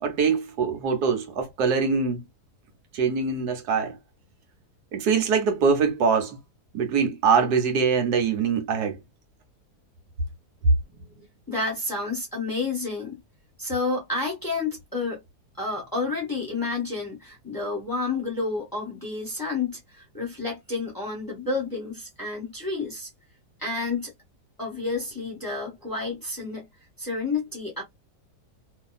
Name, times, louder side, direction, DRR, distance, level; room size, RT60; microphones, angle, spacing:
voice 1, 0.0-2.2 2.9-4.0 4.9-6.4 6.7-9.0, right 5 dB, 85° right, 1.4 m, -23 dB
voice 2, 11.5-13.2 13.6-15.2 15.6-23.1 23.6-24.1 24.6-26.7 27.0-27.8, left 3 dB, 15° left, 0.8 m, -30 dB
2.8 x 2.5 x 2.2 m
omnidirectional pair, 1.7 m